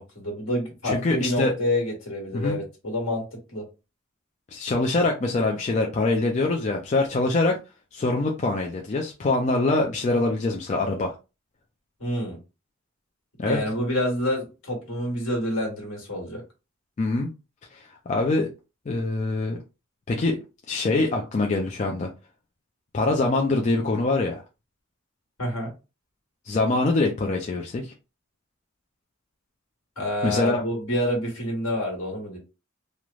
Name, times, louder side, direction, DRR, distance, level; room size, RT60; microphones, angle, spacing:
voice 1, 0.0-3.2 3.5-3.6 12.0-12.4 13.5-16.4 25.4-25.7 30.0-32.4, left 1 dB, 80° left, 1.4 m, -28 dB
voice 2, 0.8-1.5 2.3-2.6 4.5-7.6 7.9-11.1 13.4-13.6 17.0-17.3 17.7-18.5 18.9-19.6 20.1-20.4 20.7-22.1 22.9-24.4 26.5-27.9 30.2-30.6, left 2 dB, 35° left, 0.3 m, -24 dB
3.0 x 2.1 x 2.4 m
head